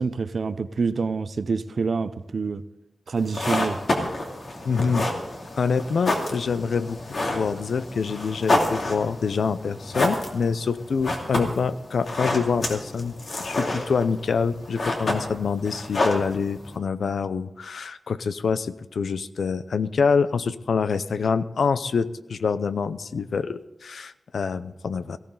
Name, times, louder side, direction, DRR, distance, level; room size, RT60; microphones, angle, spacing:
voice 1, 0.0-2.6 3.1-3.8, right 4 dB, 60° right, 13 dB, 0.6 m, -26 dB
sound 1, 3.2-16.8, left 2 dB, 55° left, 2.6 m, -29 dB
voice 2, 4.6-5.1 5.6-7.0 7.3-25.2, left 5 dB, 85° left, 14 dB, 0.6 m, -26 dB
18.0 x 16.0 x 3.9 m, 0.91 s
wide cardioid pair, 130°, 0 cm